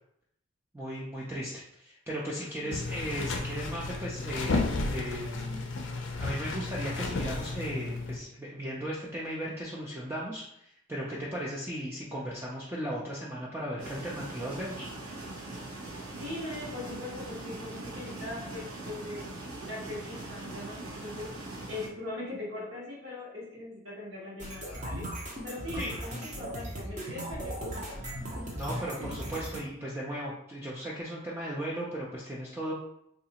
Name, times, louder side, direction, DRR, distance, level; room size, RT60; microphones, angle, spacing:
voice 1, 0.7-5.6 6.2-14.9 25.8-25.9 28.5-32.7, equal, 10° right, -6 dB, 0.4 m, -36 dB
sound 1, 2.7-8.2, left 3 dB, 55° left, 0.4 m, -33 dB
sound 2, 13.8-21.9, right 2 dB, 90° right, 0.8 m, -41 dB
voice 2, 16.2-19.3 19.6-21.3 21.7-25.0 25.4-28.0, left 2 dB, 60° right, -7 dB, 1.1 m, -40 dB
sound 3, 24.4-29.6, right 1 dB, 35° right, 0.7 m, -38 dB
3.8 x 2.4 x 2.8 m, 0.77 s
head